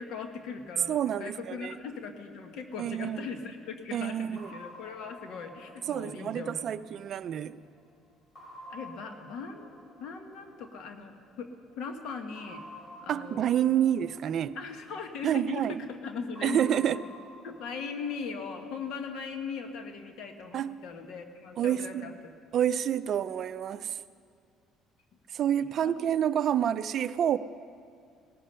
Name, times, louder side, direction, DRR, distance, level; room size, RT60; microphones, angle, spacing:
voice 1, 0.0-6.7 8.7-9.7 10.0-11.5 11.8-12.6 13.0-13.4 14.5-17.1 17.4-22.1 25.6-25.9 26.4-26.5, left 5 dB, 70° left, 1.5 m, -39 dB
voice 2, 0.9-1.8 2.8-3.2 3.9-4.5 5.9-7.5 13.1-14.6 15.2-15.7 16.4-17.0 20.5-20.7 21.6-22.1 22.5-24.0 25.3-27.4, right 10 dB, 50° right, 0.4 m, -28 dB
sound 1, 4.4-7.7 8.4-11.3 12.4-15.5 16.4-19.5, equal, 20° left, 4.5 m, -51 dB
18.5 x 13.5 x 5.7 m
cardioid pair, 120°, 0 cm